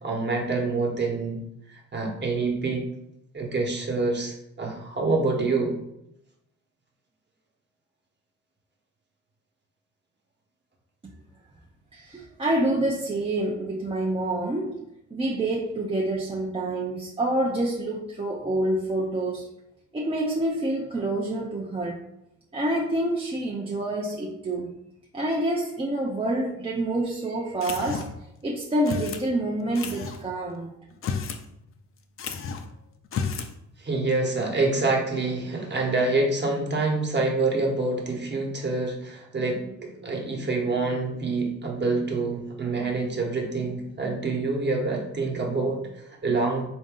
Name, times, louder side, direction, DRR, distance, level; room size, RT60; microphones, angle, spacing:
voice 1, 0.0-2.9 3.3-5.8 33.8-46.7, right 3 dB, 35° right, 0 dB, 1.1 m, -26 dB
voice 2, 11.9-14.8 15.1-19.5 19.9-22.0 22.5-24.8 25.1-28.1 28.4-30.7, right 1 dB, 20° right, -2 dB, 0.6 m, -27 dB
sound 1, 27.6-28.3 28.8-29.3 29.7-30.2 30.9-31.4 31.7-31.8 32.2-32.7 33.0-33.5, left 6 dB, 45° left, 0.5 m, -32 dB
4.0 x 2.6 x 3.7 m, 0.82 s
cardioid pair, 90°, 30 cm